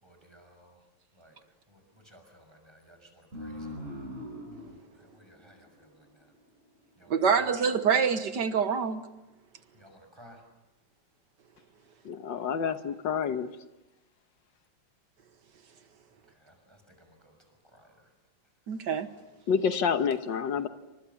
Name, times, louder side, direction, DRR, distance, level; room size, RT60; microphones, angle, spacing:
voice 1, 0.0-0.8 1.1-1.4 1.7-3.8 5.0-6.3 7.0-7.5 9.7-10.4 16.3-17.4 17.7-17.9, equal, 15° right, 6.0 m, -57 dB
sound 1, 3.3-6.5, equal, 30° right, 5.7 m, -42 dB
voice 2, 7.1-9.0 18.7-19.1, right 6 dB, 65° right, 1.8 m, -26 dB
voice 3, 12.1-13.5 19.5-20.7, left 6 dB, 75° left, 1.8 m, -28 dB
28.5 x 25.5 x 7.1 m
omnidirectional pair, 2.0 m